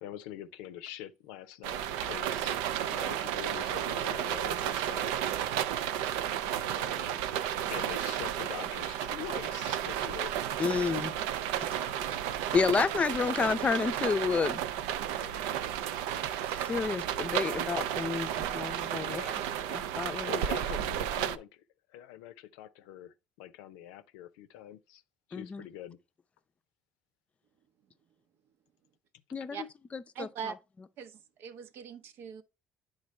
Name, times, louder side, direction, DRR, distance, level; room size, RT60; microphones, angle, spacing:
voice 1, 0.0-2.6 2.9-5.1 6.7-7.2 7.7-10.3 15.2-15.6 19.1-19.4 20.3-21.6 21.9-25.0 25.3-26.0, left 11 dB, 85° left, 0.5 m, -44 dB
sound 1, 1.6-21.4, right 10 dB, 85° right, 0.4 m, -33 dB
voice 2, 10.6-11.1 11.6-11.7 12.5-14.6 16.7-19.2 19.7-20.4 25.3-25.6 29.3-29.6 29.9-30.3, left 5 dB, 30° left, 0.5 m, -30 dB
voice 3, 30.1-30.5 31.0-32.4, right 7 dB, 70° right, 0.8 m, -41 dB
9.6 x 3.8 x 3.2 m
supercardioid pair, 75°, 4 cm